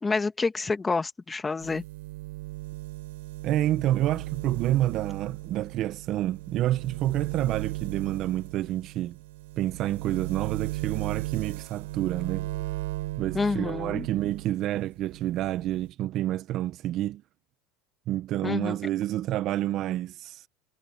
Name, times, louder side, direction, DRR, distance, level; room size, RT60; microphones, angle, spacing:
voice 1, 0.0-1.8 13.3-14.1 18.4-18.8, left 4 dB, 15° left, 1.9 m, -28 dB
sound 1, 1.6-14.6 14.9-15.9, right 19 dB, 85° right, 3.9 m, -36 dB
voice 2, 3.4-9.2 9.6-12.5 13.2-17.2 18.1-20.5, right 13 dB, 45° right, 0.8 m, -28 dB
supercardioid pair, 140°, 0 cm